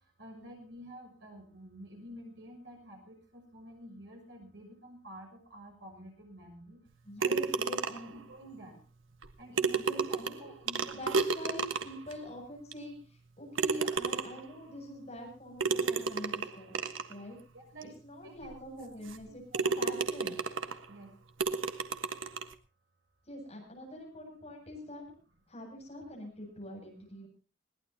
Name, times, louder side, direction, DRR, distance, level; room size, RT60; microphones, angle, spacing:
voice 1, 0.2-6.8 7.2-7.6 8.0-8.8 9.4-11.0 17.5-17.9 18.2-18.9 19.5-20.0 20.9-21.1, right 1 dB, 65° right, 3 dB, 6.6 m, -50 dB
voice 2, 7.0-8.2 9.8-10.5 10.9-16.7 17.1-17.4 18.0-20.4 23.2-25.0 25.5-27.3, left 1 dB, 30° left, 1 dB, 7.8 m, -45 dB
sound 1, 7.2-8.2 9.2-9.3 9.6-12.1 12.7-12.8 13.6-14.5 15.6-17.1 17.8-17.9 18.4-18.5 19.1-19.2 19.5-20.8 21.4-22.5, right 4 dB, 80° right, 1.4 m, -32 dB
21.0 x 18.0 x 2.9 m, 0.35 s
head